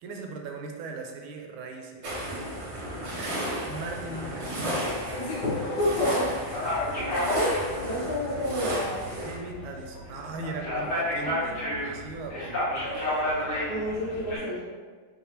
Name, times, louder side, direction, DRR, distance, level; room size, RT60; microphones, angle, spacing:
voice 1, 0.0-2.3 3.0-4.8 9.2-13.5, right 3 dB, 85° right, 3 dB, 1.4 m, -40 dB
sound 1, 2.0-9.4, right 1 dB, 60° right, 0.7 m, -33 dB
sound 2, 3.5-6.4, left 2 dB, 85° left, 1.4 m, -42 dB
voice 2, 5.2-6.3 7.3-9.0 13.7-14.6, left 1 dB, 65° left, -6 dB, 1.0 m, -29 dB
sound 3, 6.5-14.4, left 1 dB, 50° left, 1.4 m, -31 dB
3.3 x 2.3 x 4.3 m, 1.5 s
omnidirectional pair, 2.2 m